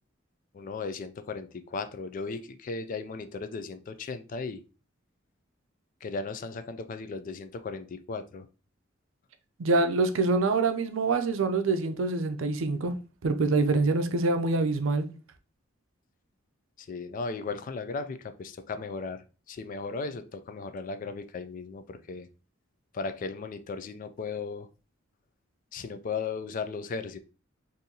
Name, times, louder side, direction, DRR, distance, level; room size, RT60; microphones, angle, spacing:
voice 1, 0.5-4.6 6.0-8.5 16.8-22.3 22.9-24.7 25.7-27.2, left 4 dB, 40° left, 0.3 m, -36 dB
voice 2, 9.6-12.9 13.2-15.1, right 3 dB, 75° right, 0.5 m, -25 dB
3.8 x 2.6 x 2.7 m
head